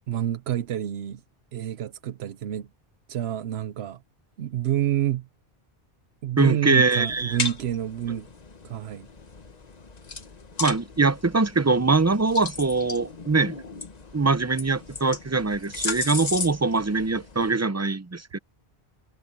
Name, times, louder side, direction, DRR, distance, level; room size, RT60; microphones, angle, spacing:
voice 1, 0.1-1.2 1.5-2.7 3.1-4.0 4.4-5.3 6.2-8.3 8.6-9.1, right 11 dB, 90° right, 0.9 m, -28 dB
voice 2, 6.4-7.4 10.6-13.6 14.1-18.4, right 3 dB, 20° right, 0.5 m, -22 dB
sound 1, 6.9-17.5, left 4 dB, 40° left, 1.2 m, -36 dB
omnidirectional pair, 1.0 m